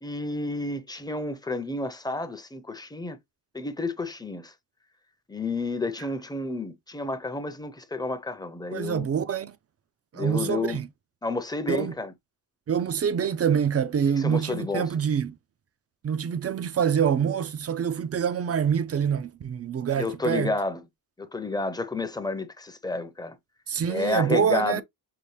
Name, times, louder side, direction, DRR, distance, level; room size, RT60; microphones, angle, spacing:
voice 1, 0.0-3.2 3.5-4.5 5.3-9.1 10.1-10.8 11.2-12.1 14.2-14.9 20.0-20.8 21.2-23.4 23.9-24.8, left 2 dB, 10° left, 0.6 m, -30 dB
voice 2, 8.7-9.5 10.1-10.9 11.7-11.9 12.7-15.3 16.0-20.5 23.7-24.8, right 7 dB, 40° right, 0.4 m, -26 dB
5.6 x 2.1 x 3.2 m
wide cardioid pair, 110°, 39 cm